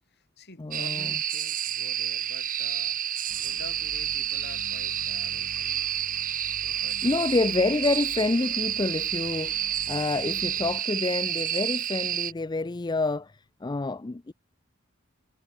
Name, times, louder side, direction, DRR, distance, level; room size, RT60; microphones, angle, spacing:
voice 1, 0.1-3.0 3.4-5.9 6.6-7.5 10.0-10.6, left 2 dB, 50° left, 7.2 m, -48 dB
voice 2, 0.6-1.1 6.7-14.3, left 3 dB, 20° left, 0.4 m, -28 dB
sound 1, 0.7-12.3, right 10 dB, 40° right, 1.2 m, -30 dB
sound 2, 3.3-10.8, right 1 dB, 60° right, 6.1 m, -48 dB
head